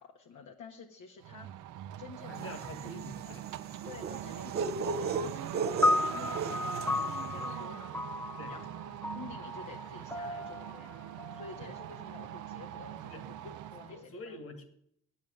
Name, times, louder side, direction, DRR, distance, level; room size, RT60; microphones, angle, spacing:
voice 1, 0.0-1.7 2.0-2.5 3.2-3.4 3.8-7.9 8.5-8.8 9.1-10.9 11.3-13.3 13.7-14.4, left 5 dB, 75° left, 1 dB, 1.5 m, -50 dB
sound 1, 1.2-14.0, right 12 dB, 85° right, 0.7 m, -42 dB
voice 2, 2.3-3.4 8.4-8.7 11.6-11.7 13.1-13.6 13.9-14.6, left 2 dB, 50° left, 9 dB, 2.1 m, -46 dB
sound 2, 2.5-7.0, right 4 dB, 35° right, 0.7 m, -36 dB
sound 3, 5.8-12.3, left 2 dB, 5° left, 0.6 m, -34 dB
8.8 x 8.8 x 9.1 m, 0.68 s
cardioid pair, 90°, 30 cm